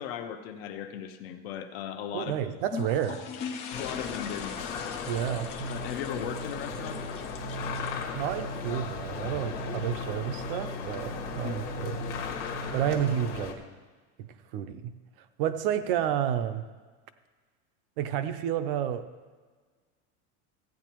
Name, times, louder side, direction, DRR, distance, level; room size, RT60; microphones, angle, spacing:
voice 1, 0.0-2.3 3.7-4.5 5.7-7.0 11.4-11.5, left 9 dB, 55° left, 7 dB, 0.8 m, -37 dB
voice 2, 2.1-3.2 5.1-5.5 8.1-12.0 12.7-13.6 14.2-14.9 15.4-16.7 18.0-19.0, right 10 dB, 50° right, 10 dB, 0.6 m, -30 dB
sound 1, 2.6-9.2, left 6 dB, 20° left, 0.3 m, -41 dB
sound 2, 3.7-13.5, left 6 dB, 85° left, 1.6 m, -37 dB
sound 3, 5.6-13.2, right 3 dB, 90° right, 1.6 m, -41 dB
15.5 x 9.1 x 3.0 m, 1.4 s
supercardioid pair, 175°, 35 cm